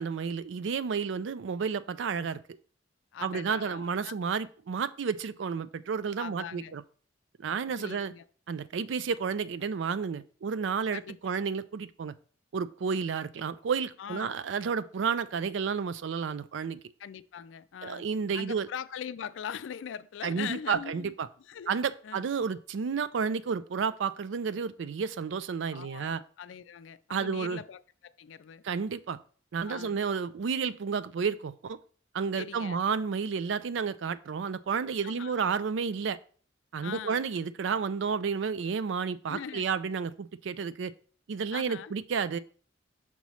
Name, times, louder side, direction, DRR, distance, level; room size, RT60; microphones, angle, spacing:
voice 1, 0.0-2.4 3.2-6.8 7.4-8.1 8.5-12.1 12.5-16.8 17.8-18.7 20.2-21.3 21.7-26.2 27.1-27.6 28.6-29.2 29.5-31.8 32.1-36.2 36.7-40.9 41.3-42.4, right 6 dB, 70° right, 0.4 m, -31 dB
voice 2, 3.1-4.1 6.2-6.7 7.8-8.2 10.9-11.1 14.0-14.4 17.0-18.1 18.3-21.1 21.5-21.7 22.0-22.3 25.7-28.6 29.6-30.0 32.4-32.8 35.0-35.4 36.8-37.3 39.3-39.6 41.5-42.0, left 8 dB, 80° left, 0.4 m, -41 dB
6.0 x 3.0 x 5.4 m
head